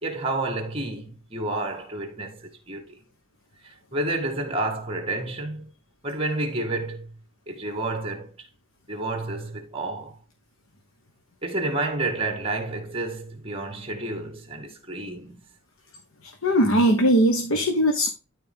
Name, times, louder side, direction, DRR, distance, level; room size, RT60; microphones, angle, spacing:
voice 1, 0.0-3.0 3.6-5.7 6.0-7.2 7.5-8.5 8.9-10.2 11.4-15.4, right 2 dB, 25° right, 1.8 m, -30 dB
voice 2, 16.2-18.1, equal, 80° left, 1.2 m, -20 dB
12.5 x 4.3 x 3.6 m
head